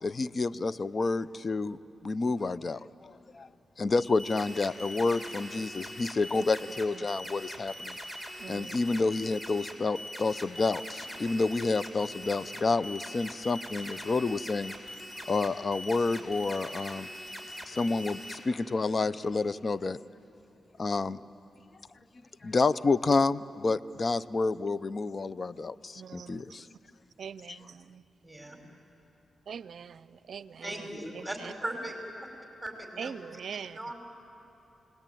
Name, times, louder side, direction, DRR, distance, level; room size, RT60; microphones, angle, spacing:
voice 1, 0.0-3.5 3.8-8.0 8.5-14.7 15.3-17.1 17.7-20.0 20.8-21.2 22.4-26.6 27.5-27.6, left 3 dB, 50° left, 0.6 m, -29 dB
sound 1, 4.0-18.4, equal, 20° left, 4.9 m, -42 dB
voice 2, 8.4-8.8 25.9-26.4 27.2-28.0 29.5-30.9 31.1-31.5 33.0-33.8, right 7 dB, 70° right, 0.6 m, -42 dB
voice 3, 28.2-28.6 30.6-31.9 32.6-33.1 33.7-33.9, right 1 dB, 10° right, 5.1 m, -38 dB
28.0 x 19.5 x 9.3 m
supercardioid pair, 50°, 0 cm